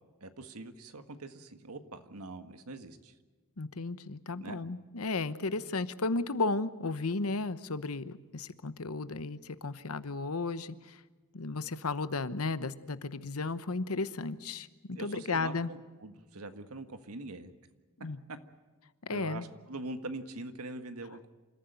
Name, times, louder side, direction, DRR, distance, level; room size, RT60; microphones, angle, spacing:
voice 1, 0.2-3.1 4.4-4.6 14.9-17.5 18.3-18.4 19.1-21.3, right 2 dB, 75° right, 8 dB, 1.7 m, -43 dB
voice 2, 3.6-11.0 11.3-15.7 18.0-18.2 19.0-19.5, left 3 dB, 70° left, 13 dB, 1.0 m, -34 dB
27.5 x 14.5 x 9.1 m, 1.3 s
head